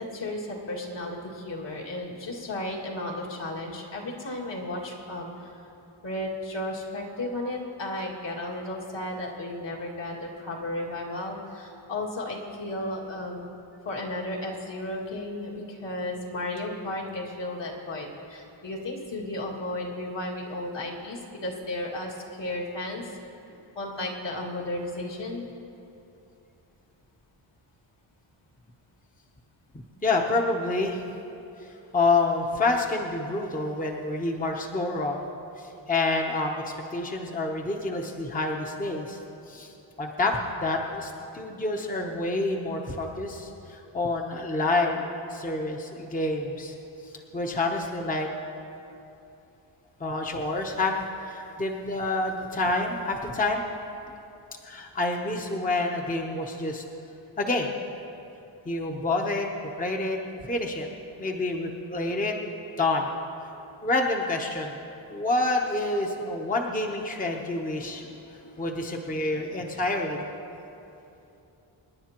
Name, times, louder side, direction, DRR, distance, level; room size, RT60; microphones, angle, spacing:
voice 1, 0.0-5.5 6.0-13.5 13.8-23.0 23.8-25.5, left 1 dB, 60° left, -3 dB, 2.2 m, -34 dB
voice 2, 30.0-31.0 31.9-39.2 39.5-46.8 47.3-48.3 50.0-50.9 51.2-53.6 54.6-56.8 57.4-57.7 58.7-60.2 60.5-60.9 61.2-62.3 62.8-63.1 63.8-64.8 65.1-68.0 68.6-70.3, left 2 dB, 15° left, 1 dB, 0.8 m, -28 dB
26.0 x 10.5 x 3.0 m, 2.9 s
wide cardioid pair, 125°, 47 cm